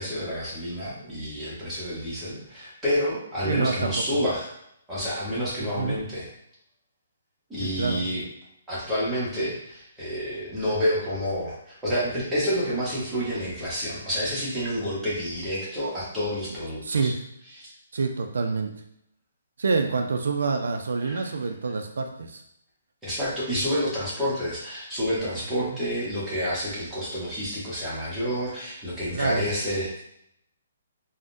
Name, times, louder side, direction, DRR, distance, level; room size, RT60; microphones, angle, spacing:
voice 1, 0.0-4.5 4.9-6.3 7.5-8.2 8.7-17.1 17.6-17.7 21.0-21.3 23.0-30.0, equal, 5° right, -11 dB, 0.8 m, -29 dB
voice 2, 3.4-4.0 5.6-6.0 7.6-8.0 16.8-17.2 17.9-18.7 19.6-22.4 25.6-25.8 29.1-29.5, right 4 dB, 80° right, 5 dB, 0.4 m, -27 dB
3.5 x 2.1 x 2.5 m, 0.76 s
hypercardioid pair, 175°, 0 cm